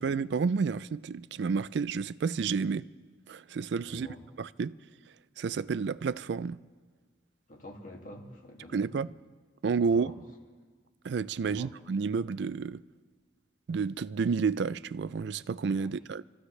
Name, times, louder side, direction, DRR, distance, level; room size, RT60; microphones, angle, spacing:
voice 1, 0.0-2.9 3.3-4.1 4.4-4.7 5.4-6.6 8.7-9.1 9.6-10.1 11.0-12.8 13.7-16.2, right 5 dB, 65° right, 0.4 m, -30 dB
voice 2, 3.8-4.2 7.5-9.0 9.8-10.1 11.4-11.7 15.8-15.9, left 1 dB, 45° left, 2.3 m, -47 dB
27.5 x 15.0 x 3.2 m
head